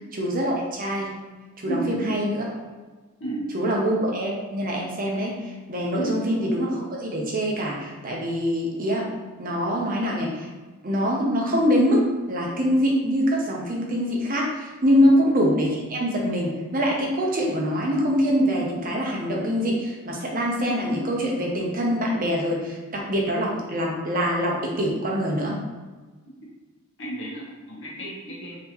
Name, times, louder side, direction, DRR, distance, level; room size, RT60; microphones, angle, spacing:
voice 1, 0.2-1.1 1.6-2.6 3.5-9.1 9.4-10.5 10.8-25.6, equal, 40° right, -1 dB, 0.6 m, -24 dB
voice 2, 1.6-2.1 3.2-3.4 5.9-6.2 14.9-15.2 27.0-28.6, right 2 dB, 60° left, -4 dB, 1.0 m, -31 dB
3.5 x 2.9 x 2.9 m, 1.3 s
head